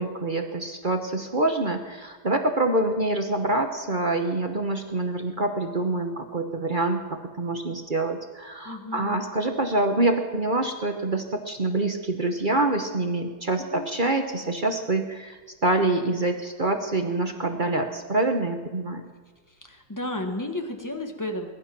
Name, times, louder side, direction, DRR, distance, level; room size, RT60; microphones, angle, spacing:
voice 1, 0.0-7.0 7.4-19.0, right 2 dB, 35° right, 5 dB, 0.8 m, -26 dB
voice 2, 8.6-9.2 13.7-13.9 19.6-21.5, left 1 dB, 10° left, 4 dB, 1.3 m, -33 dB
21.0 x 11.0 x 6.0 m, 1.4 s
omnidirectional pair, 2.1 m